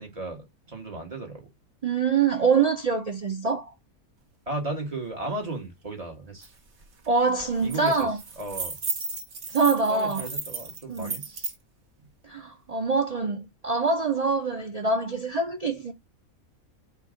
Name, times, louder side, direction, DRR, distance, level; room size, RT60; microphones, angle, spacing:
voice 1, 0.0-1.5 4.5-6.5 7.6-8.1 8.4-8.8 9.9-11.5, right 2 dB, 25° right, 1.3 m, -35 dB
voice 2, 1.8-3.7 7.1-8.2 9.5-10.3 10.9-11.2 12.2-15.9, right 4 dB, 70° right, 0.3 m, -25 dB
sound 1, 6.4-6.5 6.8-7.1 7.4-11.6, right 3 dB, 55° right, 1.4 m, -34 dB
4.5 x 2.4 x 4.8 m
omnidirectional pair, 1.5 m